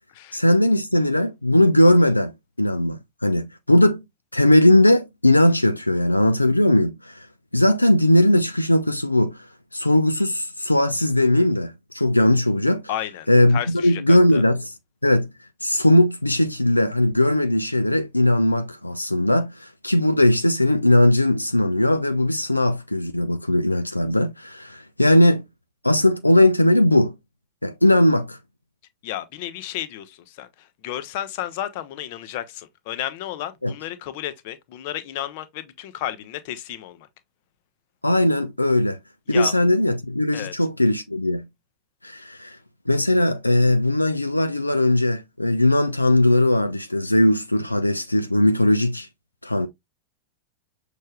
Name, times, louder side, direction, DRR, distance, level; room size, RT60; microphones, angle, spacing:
voice 1, 0.3-4.0 4.3-7.3 7.5-9.4 9.7-12.9 13.3-14.7 15.0-15.3 15.6-25.5 25.8-27.1 27.6-28.4 33.6-33.7 38.0-39.0 39.3-41.5 42.0-42.6 42.9-49.1 49.4-49.7, left 1 dB, 85° left, 0.3 m, -19 dB
voice 2, 12.9-14.4 29.0-37.1 39.3-39.5 40.3-40.5, left 12 dB, 50° left, 0.7 m, -32 dB
6.4 x 3.3 x 2.2 m
figure-of-eight pair, 90°, 0 cm